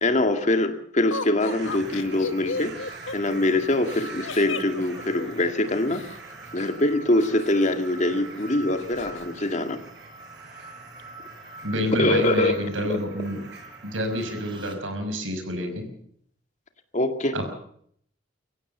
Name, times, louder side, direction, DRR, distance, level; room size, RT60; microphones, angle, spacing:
voice 1, 0.0-2.7 3.1-6.0 6.5-9.8 12.0-13.0 16.9-17.3, left 1 dB, 40° left, 7 dB, 2.1 m, -23 dB
Laughter, 1.1-6.2 7.2-8.1 8.4-8.5 8.8-9.3, left 4 dB, 80° left, 1.7 m, -35 dB
sound 1, 1.4-14.7, right 3 dB, 60° right, 7.2 m, -46 dB
sound 2, 1.6-14.8, right 2 dB, 25° right, 3.7 m, -45 dB
voice 2, 11.6-13.4 13.8-15.9 17.3-17.5, equal, 85° right, 6 dB, 5.9 m, -28 dB
24.0 x 16.0 x 6.7 m, 0.65 s
head